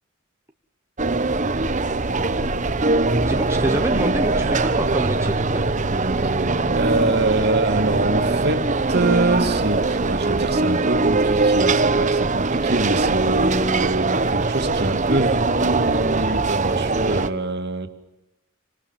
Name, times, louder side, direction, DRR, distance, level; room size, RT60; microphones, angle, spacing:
sound 1, 1.0-17.3, right 3 dB, 35° right, 1.0 m, -21 dB
sound 2, 1.6-9.9, left 1 dB, 65° left, 1.2 m, -38 dB
voice 1, 3.1-5.5, right 1 dB, 10° right, 4 dB, 1.1 m, -27 dB
voice 2, 6.7-17.9, right 2 dB, 50° right, 6 dB, 2.6 m, -25 dB
29.0 x 25.5 x 7.4 m, 0.88 s
head